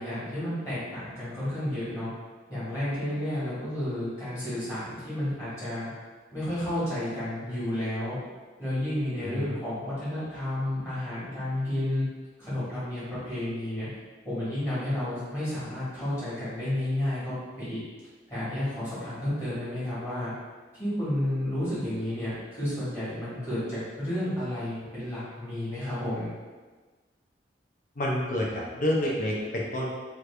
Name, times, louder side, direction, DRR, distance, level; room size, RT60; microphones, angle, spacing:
voice 1, 0.0-2.1 2.5-5.9 6.3-8.2 8.6-12.0 12.4-13.9 14.2-17.3 17.7-17.8 18.3-20.3 20.8-26.3, left 1 dB, 20° left, -13 dB, 1.4 m, -31 dB
voice 2, 9.2-9.6 28.0-29.9, left 1 dB, 50° left, -3 dB, 0.7 m, -29 dB
3.1 x 2.5 x 3.3 m, 1.4 s
head